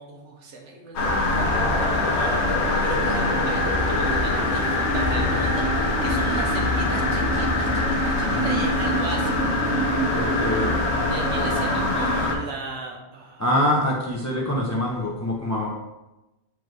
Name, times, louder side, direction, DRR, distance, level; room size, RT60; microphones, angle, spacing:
voice 1, 0.0-9.5 11.1-13.4, right 3 dB, 80° right, 0 dB, 1.1 m, -36 dB
sound 1, 0.9-12.3, left 1 dB, 70° left, 1.0 m, -23 dB
voice 2, 10.1-10.8 11.7-11.9 13.4-15.7, left 1 dB, 25° left, -3 dB, 0.4 m, -24 dB
4.6 x 2.6 x 4.5 m, 0.99 s
omnidirectional pair, 1.2 m